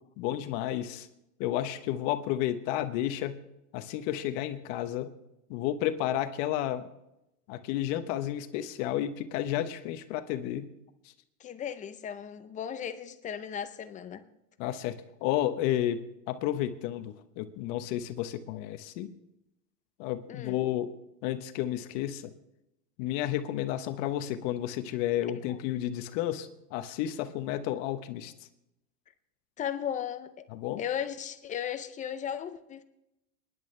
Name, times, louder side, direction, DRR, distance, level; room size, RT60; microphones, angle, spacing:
voice 1, 0.2-1.1 1.4-3.4 3.7-5.1 5.5-6.9 7.5-10.7 14.6-19.1 20.0-20.9 21.2-22.3 23.0-28.3 30.5-30.8, left 12 dB, 50° left, 1.0 m, -31 dB
voice 2, 11.4-14.2 20.3-20.6 25.5-25.6 29.6-30.5 30.8-32.8, left 9 dB, 15° left, 0.4 m, -36 dB
24.0 x 10.5 x 3.3 m
supercardioid pair, 135°, 48 cm